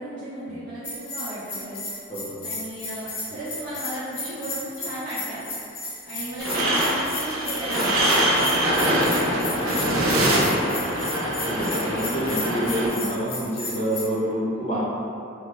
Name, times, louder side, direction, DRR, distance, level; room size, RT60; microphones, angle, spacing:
voice 1, 0.0-1.8 2.4-5.4 6.0-10.6, right 1 dB, 35° right, -14 dB, 0.6 m, -35 dB
Bell, 0.8-14.0, left 2 dB, 85° left, 0.8 m, -34 dB
sound 1, 6.4-12.9, right 1 dB, 85° right, 0.5 m, -23 dB
voice 2, 11.4-14.8, equal, 35° left, -8 dB, 0.6 m, -27 dB
3.2 x 2.0 x 3.1 m, 2.6 s
head